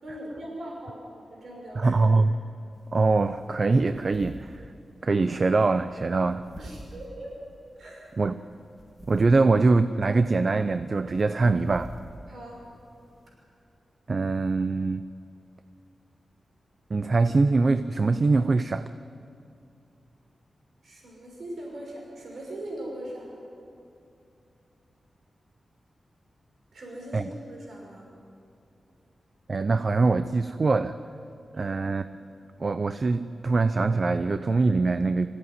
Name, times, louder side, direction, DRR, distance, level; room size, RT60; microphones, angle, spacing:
voice 1, 0.0-2.0 6.6-7.3 7.8-8.1 12.3-12.6 20.8-23.3 26.7-28.0 31.5-31.8, right 1 dB, 60° right, -2 dB, 6.0 m, -40 dB
voice 2, 1.8-2.3 2.9-4.6 5.0-6.5 8.2-8.4 9.1-11.9 14.1-15.0 16.9-18.9 27.1-27.3 29.5-31.0 31.5-32.1 32.6-35.3, right 3 dB, 35° right, 11 dB, 0.5 m, -23 dB
sound 1, 2.7-13.3, right 1 dB, 5° left, 2.3 m, -49 dB
25.0 x 16.5 x 9.6 m, 2.5 s
wide cardioid pair, 175°, 0 cm